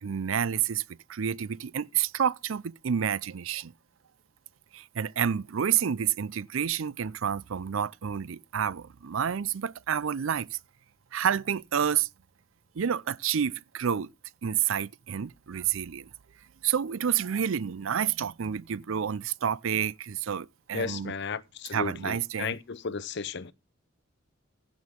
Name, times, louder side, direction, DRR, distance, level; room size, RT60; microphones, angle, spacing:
voice 1, 0.0-0.8 1.1-3.7 4.7-10.6 11.1-12.1 12.8-14.1 14.4-16.1 16.6-21.1 21.7-22.5, right 8 dB, 70° right, 0.5 m, -29 dB
voice 2, 20.7-23.5, left 5 dB, 55° left, 0.6 m, -34 dB
16.0 x 6.2 x 3.6 m
head